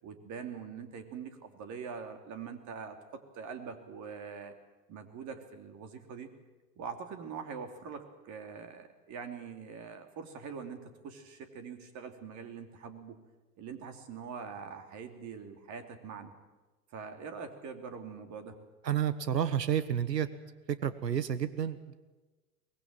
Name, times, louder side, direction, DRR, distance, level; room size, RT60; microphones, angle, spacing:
voice 1, 0.0-4.5 4.9-6.3 6.8-13.2 13.6-16.3 16.9-18.6, right 6 dB, 35° right, 7 dB, 2.9 m, -43 dB
voice 2, 18.8-20.3 20.7-21.9, right 9 dB, 90° right, 14 dB, 1.3 m, -30 dB
23.5 x 20.0 x 7.6 m, 1.2 s
hypercardioid pair, 105°, 48 cm